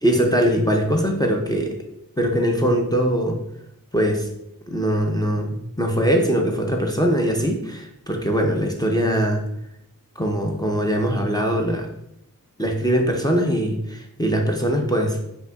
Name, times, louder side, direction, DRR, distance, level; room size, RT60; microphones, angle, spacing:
voice 1, 0.0-1.8 2.2-3.4 3.9-4.3 4.7-9.4 10.2-11.9 12.6-15.2, equal, 10° left, 1 dB, 0.5 m, -21 dB
5.3 x 2.7 x 2.3 m, 0.80 s
wide cardioid pair, 70°, 35 cm